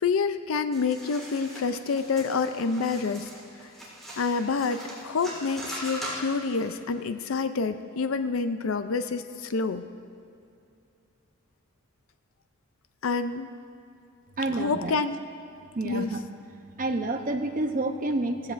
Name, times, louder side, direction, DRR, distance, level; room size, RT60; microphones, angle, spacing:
voice 1, 0.0-3.3 4.2-9.9 13.0-13.5 14.6-15.2 15.8-16.1, left 4 dB, 75° left, 10 dB, 0.5 m, -28 dB
sound 1, 0.7-6.6, equal, ahead, 3.5 m, -40 dB
voice 2, 14.4-15.0 15.7-16.2 16.8-18.5, right 2 dB, 40° right, 6 dB, 0.7 m, -29 dB
16.5 x 15.5 x 2.5 m, 2.6 s
head